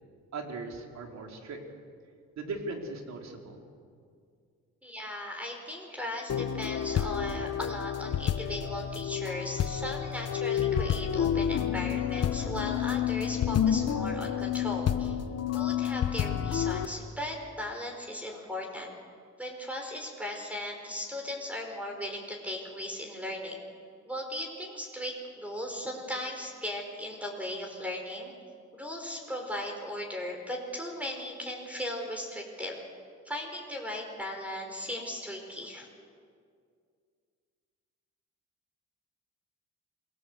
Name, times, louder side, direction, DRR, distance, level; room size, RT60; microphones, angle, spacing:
voice 1, 0.3-1.6 2.4-3.6, right 3 dB, 65° right, 2 dB, 4.3 m, -38 dB
voice 2, 4.8-15.2 15.5-18.9 19.4-23.6 24.0-28.3 28.7-32.8 33.2-35.9, left 1 dB, 5° right, 1 dB, 4.9 m, -37 dB
sound 1, 6.3-16.9, left 9 dB, 55° left, 1.2 m, -29 dB
27.5 x 20.0 x 8.1 m, 2.2 s
cardioid pair, 90°, 30 cm